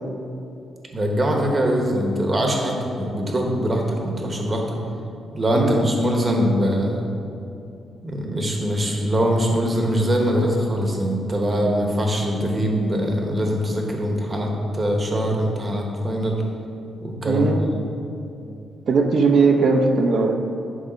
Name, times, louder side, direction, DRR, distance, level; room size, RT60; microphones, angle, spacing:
voice 1, 0.9-4.8 5.3-7.1 8.0-16.4 17.0-17.5, equal, 25° right, 0 dB, 1.3 m, -22 dB
voice 2, 5.5-5.9 17.3-17.6 18.9-20.4, right 4 dB, 60° right, 4 dB, 0.8 m, -18 dB
11.0 x 3.6 x 5.1 m, 2.7 s
cardioid pair, 120°, 0 cm